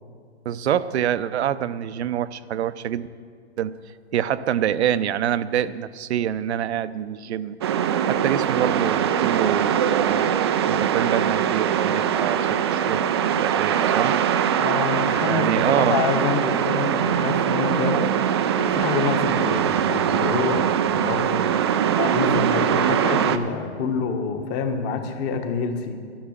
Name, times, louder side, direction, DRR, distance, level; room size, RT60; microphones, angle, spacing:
voice 1, 0.4-3.1 3.6-3.7 4.1-7.6 8.0-10.4 10.7-13.0 13.3-14.2 15.3-16.0, right 10 dB, 70° right, 15 dB, 0.7 m, -26 dB
sound 1, 7.6-23.4, right 9 dB, 25° right, 0.3 m, -22 dB
voice 2, 14.6-20.7 20.9-21.5 21.9-26.0, left 5 dB, 25° left, 6 dB, 1.3 m, -27 dB
11.5 x 10.5 x 7.3 m, 2.1 s
hypercardioid pair, 145°, 34 cm